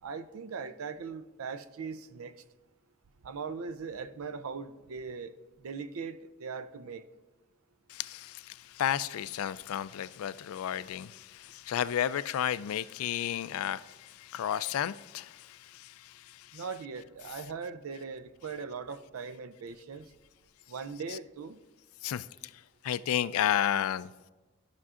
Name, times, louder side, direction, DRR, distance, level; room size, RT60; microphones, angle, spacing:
voice 1, 0.0-2.3 3.2-5.3 5.6-7.0 16.5-20.1 20.7-21.6, right 5 dB, 85° right, 0.5 m, -40 dB
voice 2, 7.9-16.7 17.3-17.4 21.1-21.2 22.0-22.5 22.8-24.1, left 10 dB, 85° left, 0.3 m, -33 dB
13.5 x 6.0 x 2.4 m
head